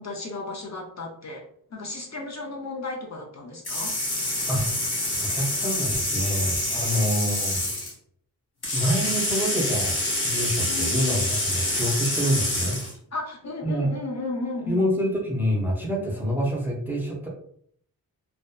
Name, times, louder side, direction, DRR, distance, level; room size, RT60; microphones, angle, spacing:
voice 1, 0.0-1.4 1.7-4.0 7.0-7.5 10.6-11.3 13.1-14.9, left 3 dB, 45° left, 0 dB, 0.5 m, -34 dB
sound 1, 3.6-7.9 8.6-12.9, left 1 dB, 85° left, 1.2 m, -27 dB
voice 2, 5.2-7.6 8.7-12.8 13.6-13.9 14.7-17.3, equal, 5° right, -2 dB, 0.5 m, -27 dB
2.5 x 2.2 x 2.2 m, 0.63 s
wide cardioid pair, 125°, 37 cm